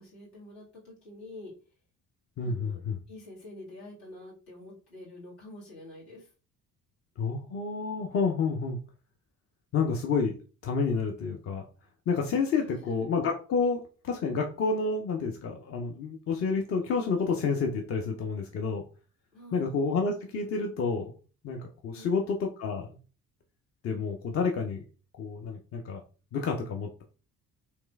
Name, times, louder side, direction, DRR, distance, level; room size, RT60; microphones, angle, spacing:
voice 1, 0.0-1.5 2.4-2.8 3.1-6.3 12.6-13.1 19.3-19.7 21.9-22.3, left 2 dB, 70° left, -6 dB, 1.5 m, -47 dB
voice 2, 2.4-3.0 7.2-8.8 9.7-10.3 10.6-11.6 12.1-18.8 19.5-21.1 21.4-22.9 23.8-24.8 25.2-26.0 26.3-27.0, left 4 dB, 30° left, 2 dB, 0.5 m, -29 dB
3.2 x 2.9 x 2.2 m, 0.36 s
figure-of-eight pair, 45°, 49 cm